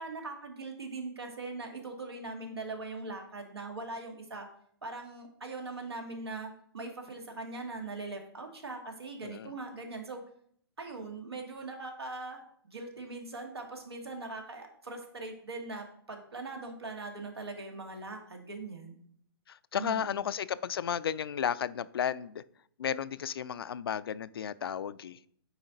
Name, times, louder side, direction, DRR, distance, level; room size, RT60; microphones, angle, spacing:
voice 1, 0.0-4.5 4.8-10.2 10.8-19.0 19.8-20.3, right 3 dB, 85° right, 3 dB, 2.0 m, -41 dB
voice 2, 9.2-9.5 19.5-22.4 22.8-25.2, left 8 dB, 70° left, 17 dB, 0.4 m, -33 dB
9.1 x 4.3 x 3.9 m, 0.64 s
figure-of-eight pair, 125°, 13 cm